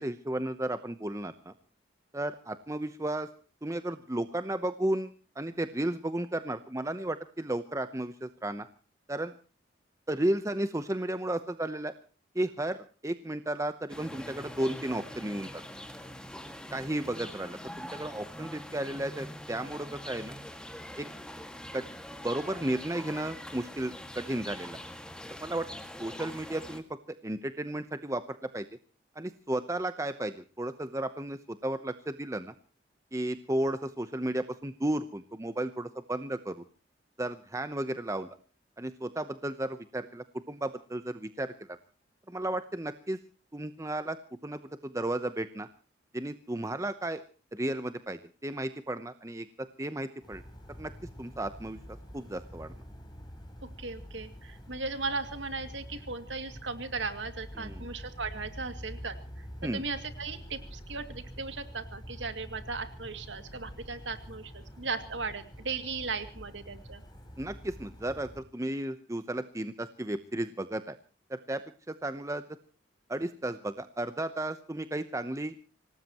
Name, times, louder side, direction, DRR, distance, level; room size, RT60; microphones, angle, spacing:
voice 1, 0.0-1.5 2.1-3.3 3.6-8.7 9.1-9.3 10.1-11.9 12.3-15.6 16.7-20.4 21.0-21.1 21.7-21.8 22.2-24.8 25.3-25.7 26.0-28.7 29.1-32.5 33.1-36.6 37.2-38.3 38.8-41.8 42.3-43.2 43.5-44.2 44.4-45.7 46.1-47.2 47.5-50.4 50.8-50.9 51.2-52.7 57.6-57.9 59.6-59.8 67.4-71.0 71.3-71.6 71.9-72.4 73.1-75.5, right 1 dB, 15° right, 10 dB, 0.8 m, -34 dB
sound 1, 13.9-26.8, left 1 dB, 5° left, 1.9 m, -43 dB
sound 2, 50.2-68.4, equal, 20° left, 6.9 m, -46 dB
voice 2, 53.6-67.0, right 4 dB, 80° right, 9 dB, 2.4 m, -37 dB
26.0 x 18.5 x 3.0 m, 0.37 s
head